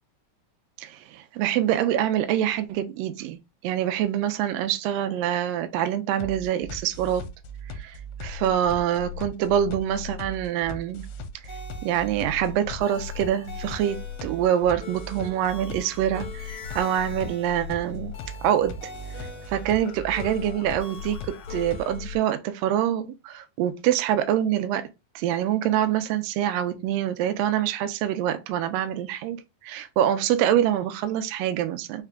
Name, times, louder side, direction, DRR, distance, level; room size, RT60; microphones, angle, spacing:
voice 1, 0.8-7.3 7.8-7.9 8.2-11.1 11.8-18.1 18.4-18.8 19.5-24.9 25.1-29.4 29.6-32.0, right 11 dB, 85° right, 1.4 m, -25 dB
sound 1, 6.2-22.2, left 3 dB, 80° left, 2.0 m, -38 dB
sound 2, 11.5-22.1, left 3 dB, 50° left, 1.2 m, -44 dB
4.9 x 3.3 x 2.2 m
omnidirectional pair, 3.5 m